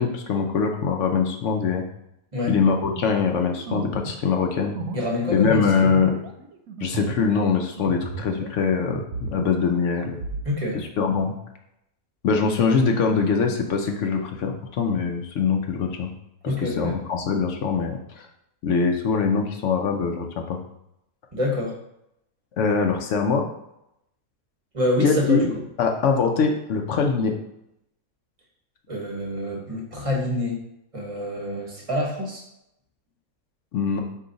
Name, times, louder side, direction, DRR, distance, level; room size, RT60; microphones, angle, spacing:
voice 1, 0.0-1.8 2.5-4.8 5.3-6.1 6.8-10.2 10.7-11.3 12.2-16.1 16.4-18.0 18.6-20.6 22.6-23.4 25.0-25.5 25.8-27.4 33.7-34.0, left 5 dB, 65° left, 3 dB, 0.9 m, -23 dB
sound 1, 2.8-8.6 8.9-10.5, right 5 dB, 75° right, 1.0 m, -35 dB
voice 2, 4.9-5.9 10.4-10.8 16.4-17.0 21.3-21.7 24.7-25.5 28.9-30.6 30.9-32.4, left 1 dB, 25° right, -2 dB, 0.9 m, -26 dB
4.8 x 2.8 x 3.8 m, 0.82 s
omnidirectional pair, 1.5 m